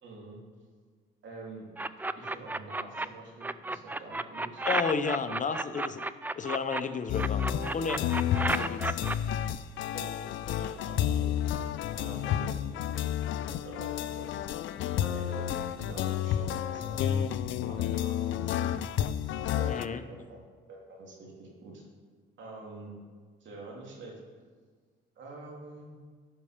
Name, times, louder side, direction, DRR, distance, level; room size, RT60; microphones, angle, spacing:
voice 1, 0.0-0.4 1.2-1.7 2.1-4.7 8.2-8.3 9.9-10.1 10.5-11.3 11.9-14.3 15.0-17.3 17.6-18.9 19.6-21.8 22.4-22.9 23.4-24.2 25.2-25.9, right 2 dB, 70° right, -2 dB, 2.8 m, -46 dB
sound 1, 1.8-3.1 3.4-6.8 7.2-9.2, right 2 dB, 10° right, 0.3 m, -32 dB
voice 2, 4.7-6.0 6.4-7.4 7.7-8.0 8.6-9.0 19.7-20.0, left 5 dB, 40° left, 10 dB, 0.7 m, -32 dB
sound 2, 7.1-19.9, left 10 dB, 75° left, 0.4 m, -31 dB
12.5 x 5.4 x 5.1 m, 1.5 s
cardioid pair, 90°, 20 cm